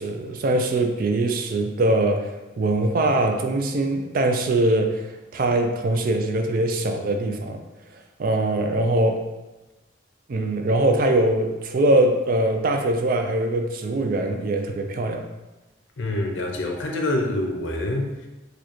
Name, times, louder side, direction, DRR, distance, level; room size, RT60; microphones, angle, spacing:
voice 1, 0.0-7.6 8.2-9.2 10.3-15.2, right 2 dB, 45° right, 4 dB, 0.3 m, -22 dB
voice 2, 16.0-18.3, left 1 dB, 80° left, 2 dB, 0.6 m, -26 dB
4.5 x 2.3 x 3.0 m, 1.1 s
head